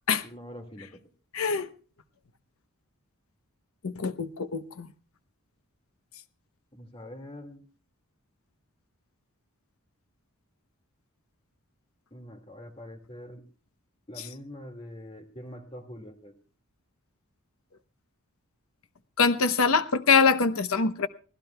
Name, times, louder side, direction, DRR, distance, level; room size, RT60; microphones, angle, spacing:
voice 1, 0.2-0.9 6.7-7.7 12.1-13.4 14.1-16.3, equal, 25° left, 2.0 m, -44 dB
voice 2, 1.3-1.7 3.8-4.9 19.2-21.1, left 5 dB, 70° left, 0.8 m, -24 dB
24.0 x 16.5 x 2.3 m
head